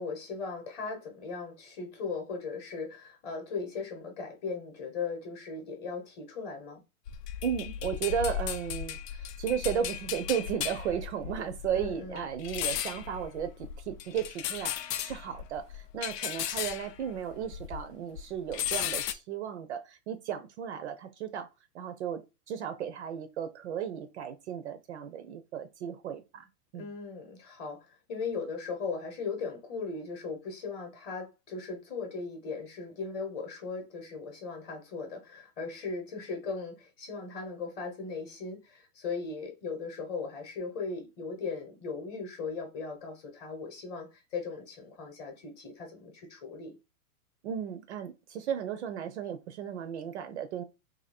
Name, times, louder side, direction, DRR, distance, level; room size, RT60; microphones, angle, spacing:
voice 1, 0.0-6.8 11.7-12.2 26.7-46.7, left 4 dB, 20° left, 0.9 m, -38 dB
sound 1, 7.1-17.9 18.2-19.1, left 10 dB, 85° left, 0.6 m, -36 dB
voice 2, 7.4-21.5 21.7-22.2 22.5-26.5 26.7-26.9 47.4-50.6, right 8 dB, 50° right, 0.5 m, -35 dB
2.7 x 2.7 x 4.1 m
hypercardioid pair, 145°, 47 cm